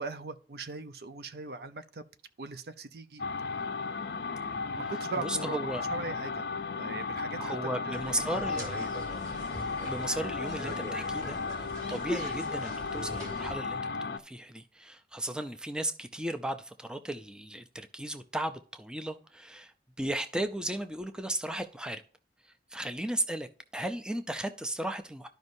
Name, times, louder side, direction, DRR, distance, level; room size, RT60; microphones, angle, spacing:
voice 1, 0.0-2.0 2.4-3.2 4.7-9.0 9.2-9.5, right 3 dB, 60° right, 0.6 m, -40 dB
sound 1, 3.2-14.2, left 4 dB, 65° left, 0.5 m, -35 dB
voice 2, 5.2-5.8 7.4-8.7 9.8-13.8 14.1-19.7 20.0-22.0 22.7-23.5 23.7-25.3, right 1 dB, 5° right, 0.4 m, -35 dB
sound 2, 7.9-13.5, right 1 dB, 20° right, 2.0 m, -41 dB
12.5 x 5.2 x 2.6 m
head